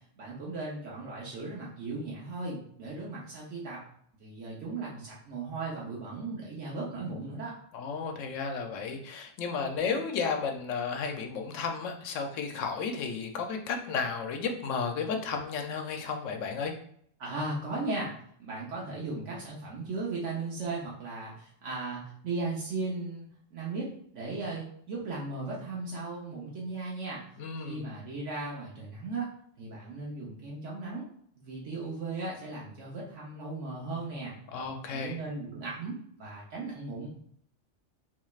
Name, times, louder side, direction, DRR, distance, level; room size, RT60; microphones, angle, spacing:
voice 1, 0.2-3.8 4.2-7.6 17.2-18.1 18.4-27.2 27.6-29.3 29.6-31.1 31.4-34.3 34.8-37.2, right 3 dB, 75° right, -4 dB, 1.1 m, -37 dB
voice 2, 7.7-16.7 27.4-27.9 34.5-35.2, left 5 dB, 90° left, 4 dB, 1.0 m, -33 dB
4.0 x 3.1 x 2.3 m, 0.65 s
omnidirectional pair, 1.3 m